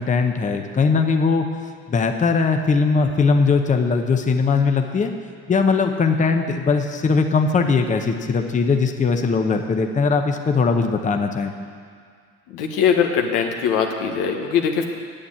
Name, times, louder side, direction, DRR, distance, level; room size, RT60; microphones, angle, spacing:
voice 1, 0.0-1.5 1.9-5.1 5.5-11.5, left 4 dB, 25° left, 5 dB, 0.8 m, -20 dB
voice 2, 12.5-14.8, left 7 dB, 90° left, 3 dB, 1.3 m, -21 dB
8.8 x 7.9 x 8.8 m, 2.1 s
cardioid pair, 105°, 30 cm